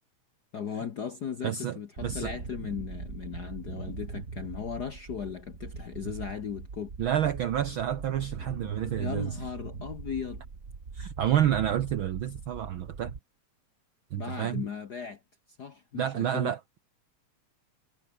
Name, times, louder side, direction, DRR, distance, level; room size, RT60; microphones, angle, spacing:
voice 1, 0.5-6.9 9.0-10.4 14.1-15.2 15.6-16.5, left 7 dB, 55° left, 1.1 m, -37 dB
voice 2, 1.4-2.3 7.0-9.4 10.9-13.1 14.1-14.6 15.9-16.8, right 10 dB, 70° right, 1.2 m, -29 dB
sound 1, 2.0-13.2, right 4 dB, 30° right, 2.2 m, -41 dB
omnidirectional pair, 3.3 m